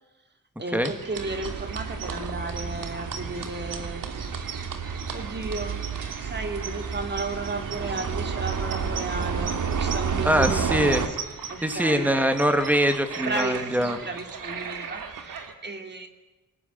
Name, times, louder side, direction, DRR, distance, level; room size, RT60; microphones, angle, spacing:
voice 1, 0.6-4.7 5.1-5.9 6.2-11.2 11.5-12.1 13.2-16.1, right 3 dB, 30° right, 6 dB, 2.9 m, -34 dB
sound 1, 0.8-15.5, right 6 dB, 80° right, 2.8 m, -38 dB
sound 2, 1.2-11.1, right 6 dB, 65° right, 2.4 m, -31 dB
voice 2, 10.3-11.0 11.6-14.0, equal, 5° right, 7 dB, 2.4 m, -23 dB
24.5 x 19.5 x 9.5 m, 1.1 s
wide cardioid pair, 155°, 32 cm